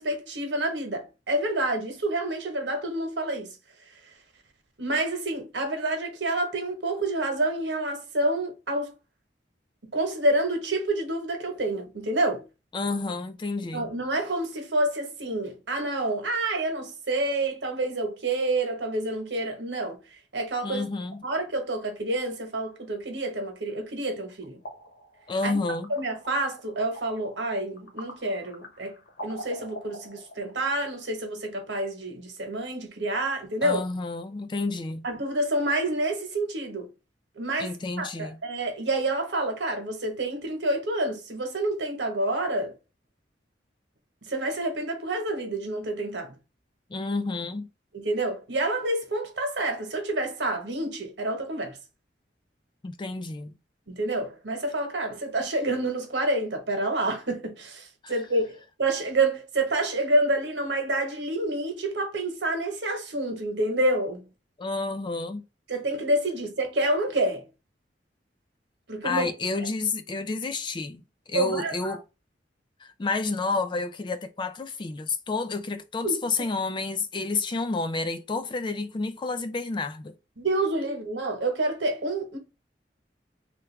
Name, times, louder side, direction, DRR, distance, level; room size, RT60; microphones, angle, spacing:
voice 1, 0.0-3.5 4.8-8.9 9.9-12.4 13.7-20.0 20.3-20.8 21.2-24.6 25.4-25.6 25.9-29.0 29.2-33.8 35.0-36.9 37.4-42.7 44.2-46.4 47.9-51.8 53.9-64.3 65.7-67.5 68.9-69.3 71.3-72.0 76.0-76.2 80.4-82.4, right 2 dB, 80° right, 1.1 m, -28 dB
voice 2, 12.7-13.9 20.6-21.2 25.3-25.9 33.6-35.1 37.6-38.4 46.9-47.7 52.8-53.5 58.0-58.1 64.6-65.4 69.0-71.0 71.3-72.0 72.8-80.1, left 3 dB, 25° left, 0.3 m, -30 dB
sound 1, 24.0-30.6, equal, 80° left, 1.1 m, -45 dB
3.3 x 2.4 x 3.2 m
head